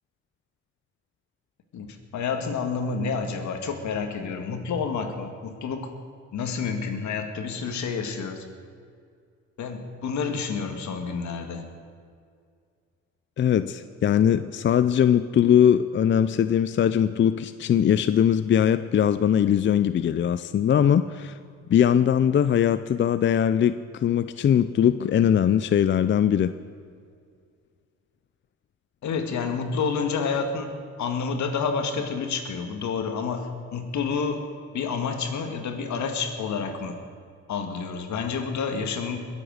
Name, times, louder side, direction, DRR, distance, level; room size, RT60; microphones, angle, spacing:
voice 1, 1.7-5.9 6.3-8.5 9.6-11.6 29.0-30.7 31.0-34.5 34.7-37.0 37.5-39.2, left 5 dB, 70° left, 5 dB, 2.0 m, -29 dB
voice 2, 13.4-21.4 21.7-26.5, left 9 dB, 40° left, 13 dB, 0.5 m, -21 dB
21.5 x 8.1 x 6.5 m, 2.2 s
cardioid pair, 90°, 30 cm